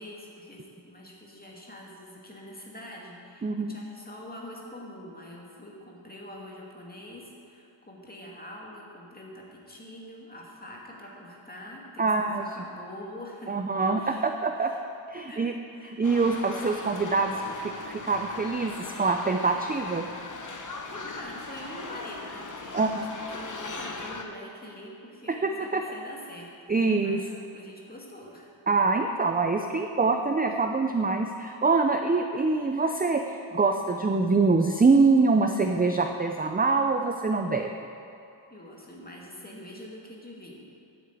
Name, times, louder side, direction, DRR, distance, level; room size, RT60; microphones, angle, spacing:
voice 1, 0.0-13.6 14.0-14.8 15.3-16.0 20.9-28.5 38.5-40.6, left 1 dB, 20° left, -2 dB, 2.2 m, -45 dB
voice 2, 3.4-3.8 12.0-12.4 13.5-14.7 15.1-15.5 15.8-20.0 22.7-23.0 25.4-25.8 26.7-27.2 28.7-37.7, right 4 dB, 20° right, 5 dB, 0.5 m, -24 dB
sound 1, 16.0-24.2, left 3 dB, 40° left, 1.1 m, -39 dB
10.0 x 8.8 x 8.2 m, 2.7 s
wide cardioid pair, 125°, 47 cm